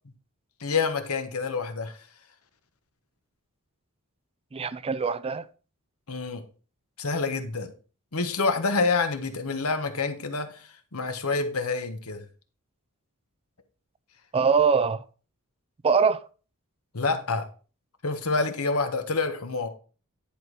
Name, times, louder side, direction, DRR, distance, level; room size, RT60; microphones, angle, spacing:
voice 1, 0.6-2.0 6.1-6.4 7.0-7.7 8.1-12.2 16.9-17.5 18.0-19.7, left 4 dB, 70° left, 1.2 m, -27 dB
voice 2, 4.5-5.5 14.3-15.0 15.8-16.2, right 5 dB, 25° right, 0.4 m, -23 dB
10.5 x 4.7 x 4.7 m
head